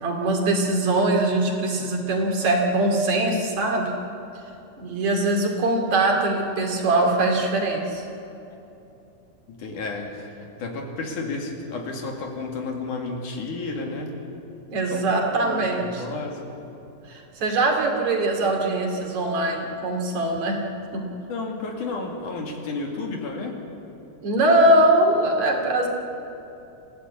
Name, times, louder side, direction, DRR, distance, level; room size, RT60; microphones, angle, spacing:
voice 1, 0.0-3.9 4.8-8.0 14.7-16.0 17.1-20.6 20.9-21.1 24.2-25.9, right 2 dB, 60° right, 1 dB, 3.7 m, -22 dB
voice 2, 9.5-14.2 14.9-15.0 15.4-16.5 21.3-23.6, left 3 dB, 70° left, 1 dB, 3.8 m, -32 dB
26.5 x 16.0 x 8.4 m, 2.9 s
omnidirectional pair, 3.8 m